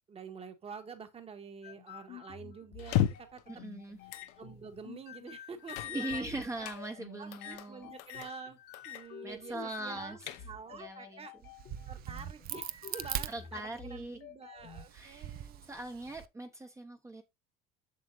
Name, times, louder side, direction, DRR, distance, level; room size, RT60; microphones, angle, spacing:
voice 1, 0.1-3.4 4.4-6.7 7.2-8.6 8.8-10.2 10.4-11.3 11.9-15.7, right 5 dB, 30° right, 1.6 m, -48 dB
sound 1, 1.6-14.9, left 8 dB, 55° left, 1.4 m, -51 dB
sound 2, 2.8-3.4 4.1-4.3 4.7-4.8 5.7-6.8 7.3-7.7 8.0-8.3 8.7-9.1 9.4-9.5 10.0-10.7, left 12 dB, 85° left, 0.9 m, -34 dB
voice 2, 3.5-4.0 5.9-7.9 9.2-10.3 10.7-11.3 13.3-14.2 14.9-17.2, right 2 dB, 15° right, 1.1 m, -41 dB
Crack, 11.4-14.1 14.6-16.3, right 11 dB, 50° right, 0.6 m, -41 dB
7.6 x 6.3 x 2.6 m
supercardioid pair, 100°, 20 cm